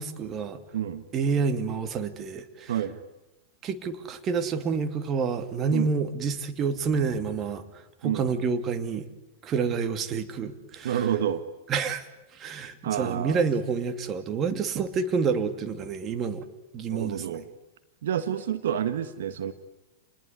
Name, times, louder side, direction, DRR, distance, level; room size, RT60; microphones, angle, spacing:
voice 1, 0.0-0.6 1.1-2.7 3.6-7.6 8.0-9.1 9.4-11.1 11.7-12.0 12.3-16.5 16.7-17.4, right 5 dB, 30° right, 9 dB, 2.6 m, -28 dB
voice 2, 0.7-1.0 2.7-3.0 5.7-5.9 8.0-8.3 10.8-11.4 12.8-13.4 14.4-14.5 16.9-17.5 18.0-19.5, right 10 dB, 70° right, 11 dB, 1.5 m, -29 dB
29.0 x 20.5 x 9.7 m, 1.0 s
hypercardioid pair, 105°, 0 cm